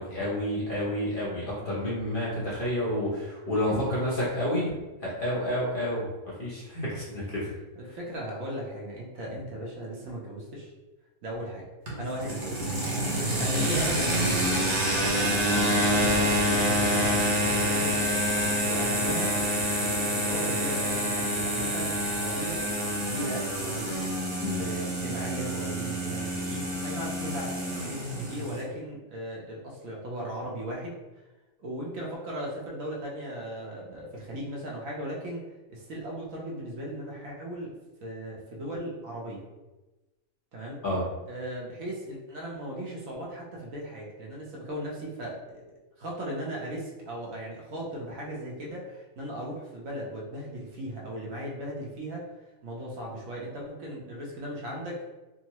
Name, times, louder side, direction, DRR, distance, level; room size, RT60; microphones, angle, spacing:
voice 1, 0.0-6.1 6.4-7.5 24.4-24.6 40.8-41.0, left 1 dB, 45° left, -7 dB, 0.9 m, -29 dB
voice 2, 7.7-10.7 11.2-11.7 12.0-12.7 13.4-18.0 18.7-19.3 19.8-22.8 23.1-24.0 24.6-31.0 31.6-35.4 35.7-37.7 38.0-39.4 40.5-40.8 41.3-52.3 52.6-55.0, right 1 dB, 70° right, -3 dB, 1.1 m, -37 dB
sound 1, 11.9-28.6, equal, 40° right, 0.6 m, -27 dB
3.6 x 2.0 x 2.9 m, 1.1 s
omnidirectional pair, 1.5 m